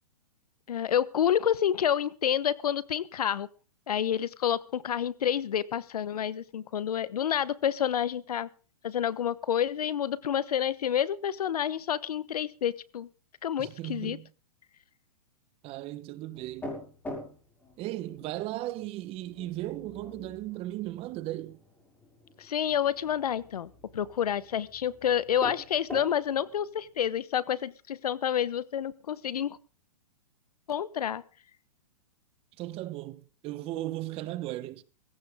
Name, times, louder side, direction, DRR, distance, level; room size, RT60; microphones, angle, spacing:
voice 1, 0.7-3.5 3.9-8.5 8.8-13.1 13.4-14.2 22.4-29.6 30.7-31.2, left 9 dB, 80° left, 1.1 m, -29 dB
voice 2, 13.6-14.3 15.6-16.7 17.8-21.6 32.6-34.8, right 16 dB, 30° right, 1.2 m, -36 dB
sound 1, 16.3-27.1, left 1 dB, 10° left, 6.0 m, -46 dB
19.0 x 16.5 x 3.7 m
hypercardioid pair, 135°, 19 cm